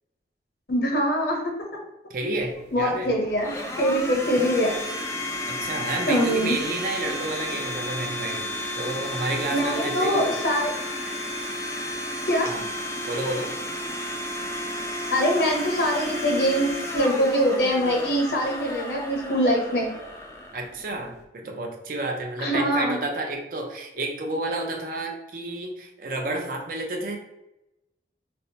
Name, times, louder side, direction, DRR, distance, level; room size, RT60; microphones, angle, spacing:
voice 1, 0.7-1.4 2.7-4.7 6.1-6.6 9.5-10.7 12.2-12.5 15.1-19.9 22.4-23.0, equal, 70° left, 1 dB, 0.8 m, -23 dB
voice 2, 2.1-3.1 5.5-8.5 8.7-10.3 12.5-12.6 13.1-13.5 20.5-27.2, right 2 dB, 50° right, 2 dB, 0.5 m, -30 dB
Domestic sounds home sounds, 2.4-21.2, left 1 dB, 15° left, 0.3 m, -33 dB
4.2 x 2.1 x 2.7 m, 0.92 s
head